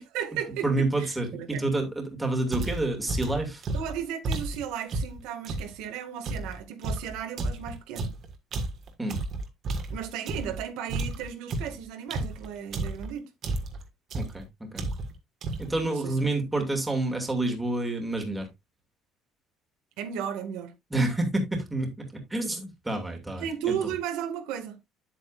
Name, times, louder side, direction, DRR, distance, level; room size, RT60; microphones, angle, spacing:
voice 1, 0.0-0.7 1.0-1.7 3.7-8.1 9.9-13.2 15.8-16.1 20.0-20.7 23.4-24.8, right 9 dB, 80° right, 2.0 m, -35 dB
voice 2, 0.6-3.6 9.0-9.2 14.1-14.8 15.6-18.5 20.9-23.7, right 2 dB, 5° right, 2.4 m, -28 dB
sound 1, 2.5-5.7 6.2-10.6 10.9-13.1 13.4-13.8 14.1-14.4 14.7-15.2 15.4-15.8, right 2 dB, 40° right, 1.9 m, -32 dB
9.2 x 8.3 x 2.5 m
cardioid pair, 150°, 0 cm